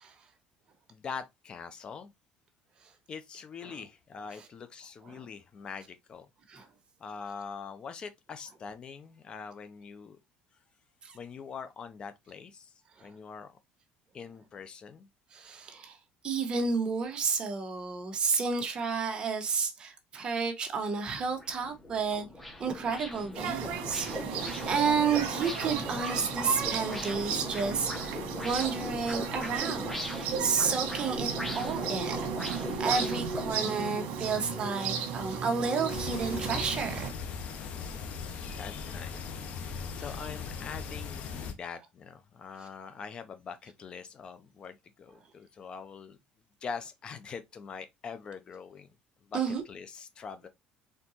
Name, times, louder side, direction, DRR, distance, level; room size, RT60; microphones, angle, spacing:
voice 1, 0.9-2.1 3.1-6.3 7.0-10.2 11.1-13.6 14.1-15.1 37.7-39.3 39.6-46.2 46.6-48.9 49.3-50.5, left 5 dB, 35° left, 0.5 m, -43 dB
voice 2, 15.3-16.0 16.2-22.3 22.6-31.3 31.5-32.3 32.8-36.9 49.3-49.6, right 5 dB, 35° right, 1.2 m, -31 dB
sound 1, 20.6-20.7 21.1-33.5, left 1 dB, 5° left, 0.9 m, -39 dB
sound 2, 23.4-37.1, right 6 dB, 75° right, 1.3 m, -35 dB
sound 3, 35.9-41.5, left 6 dB, 50° left, 1.0 m, -39 dB
4.3 x 3.8 x 2.8 m
cardioid pair, 140°, 3 cm